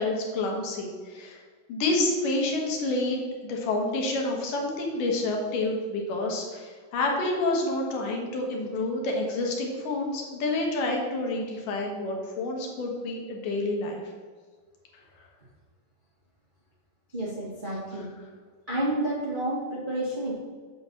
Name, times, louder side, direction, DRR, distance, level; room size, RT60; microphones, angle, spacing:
voice 1, 0.0-1.4 1.7-14.0 17.9-18.0, left 2 dB, 70° left, 0 dB, 2.8 m, -28 dB
voice 2, 17.1-18.1 18.7-20.3, right 1 dB, 90° right, -5 dB, 0.4 m, -30 dB
8.5 x 4.0 x 6.7 m, 1.6 s
omnidirectional pair, 4.1 m